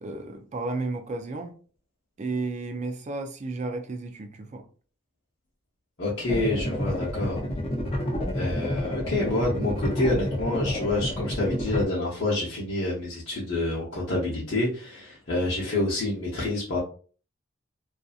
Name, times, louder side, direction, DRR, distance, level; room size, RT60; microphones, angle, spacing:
voice 1, 0.0-1.6 2.2-4.7, right 3 dB, 35° right, 0.4 m, -33 dB
voice 2, 6.0-7.4 8.3-16.8, left 2 dB, 60° left, 0.8 m, -28 dB
sound 1, 6.3-11.8, left 1 dB, 30° left, 0.5 m, -29 dB
2.6 x 2.4 x 2.4 m
head